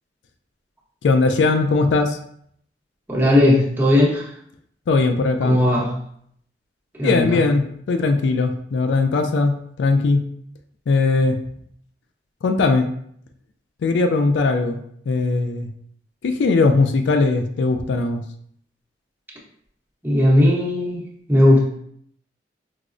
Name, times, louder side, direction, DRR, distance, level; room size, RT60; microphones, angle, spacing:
voice 1, 1.0-2.2 4.9-5.6 7.0-9.5 9.8-10.2 10.9-11.4 12.4-12.9 13.8-14.8 15.1-15.7 16.2-18.2, left 3 dB, 85° left, 7 dB, 0.3 m, -19 dB
voice 2, 3.1-4.3 5.4-5.9 7.0-7.4 20.0-21.7, left 1 dB, 10° right, -5 dB, 0.8 m, -17 dB
4.7 x 2.0 x 2.5 m, 0.68 s
head